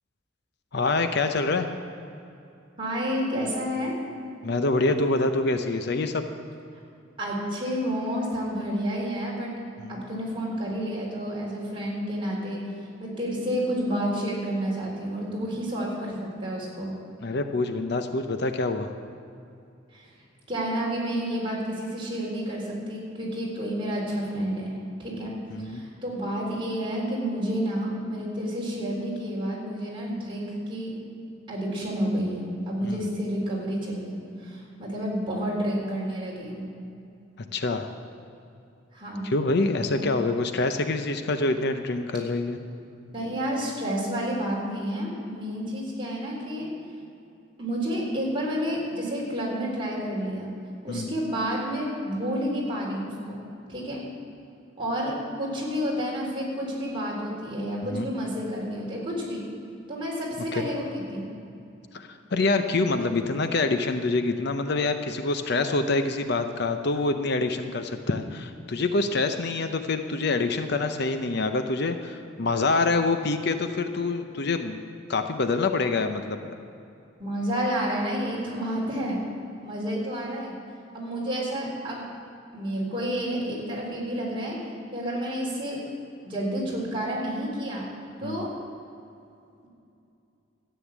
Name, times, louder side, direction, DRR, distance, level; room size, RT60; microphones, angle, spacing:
voice 1, 0.7-1.7 4.4-6.2 9.8-10.0 17.2-18.9 25.5-25.8 32.8-33.0 37.5-37.9 39.2-42.6 50.9-51.1 57.8-58.1 60.5-60.7 61.9-74.8 75.1-76.4 88.2-88.5, left 3 dB, 60° left, 7 dB, 0.7 m, -26 dB
voice 2, 2.8-3.9 7.2-9.5 9.9-12.6 13.0-16.9 19.9-20.1 20.5-24.7 25.0-25.3 25.6-31.0 31.5-36.6 38.9-39.3 39.9-40.0 43.1-46.7 47.6-50.5 50.8-53.4 53.7-54.0 54.8-59.4 59.9-61.3 77.2-79.2 79.6-80.5 80.9-82.0 82.5-84.6 84.9-85.8 86.2-87.9 88.2-88.5, equal, 25° right, -4 dB, 3.9 m, -30 dB
13.5 x 9.3 x 7.3 m, 2.6 s
head